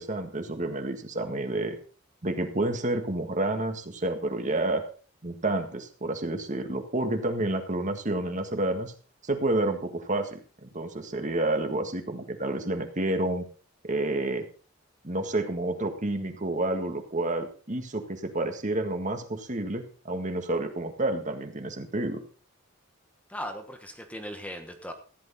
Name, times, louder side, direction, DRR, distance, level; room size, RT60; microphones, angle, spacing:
voice 1, 0.0-1.8 2.2-4.8 5.2-8.9 9.2-13.5 13.8-14.5 15.0-22.2, right 2 dB, 40° right, 6 dB, 1.8 m, -29 dB
voice 2, 23.3-24.9, equal, 5° left, 5 dB, 1.2 m, -38 dB
15.0 x 11.0 x 4.3 m, 0.38 s
head